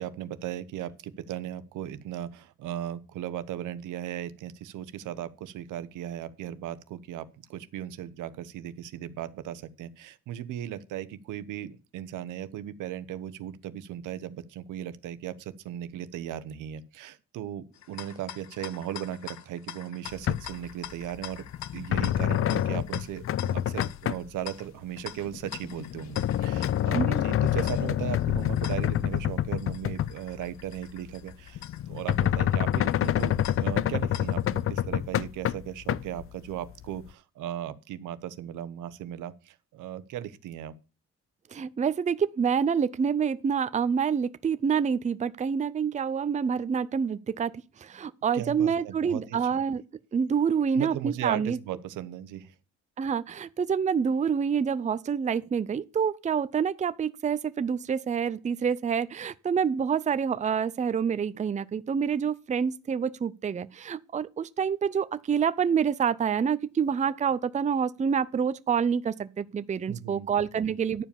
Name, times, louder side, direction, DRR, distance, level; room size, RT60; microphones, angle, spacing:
voice 1, 0.0-21.4 21.7-33.3 33.6-40.7 48.3-49.4 50.7-52.5 69.9-70.3 70.6-70.7, right 11 dB, 85° right, 0.9 m, -37 dB
sound 1, 17.7-34.6, left 11 dB, 65° left, 0.8 m, -45 dB
sound 2, 20.1-20.7 21.0-24.3 25.0-30.5 30.8-30.9 31.5-36.3 36.8-36.9, left 11 dB, 45° left, 0.4 m, -27 dB
voice 2, 26.9-27.4 41.5-47.5 47.8-49.8 50.1-51.6 53.0-71.0, right 7 dB, 25° right, 0.5 m, -27 dB
11.0 x 4.9 x 7.0 m
cardioid pair, 90°, 30 cm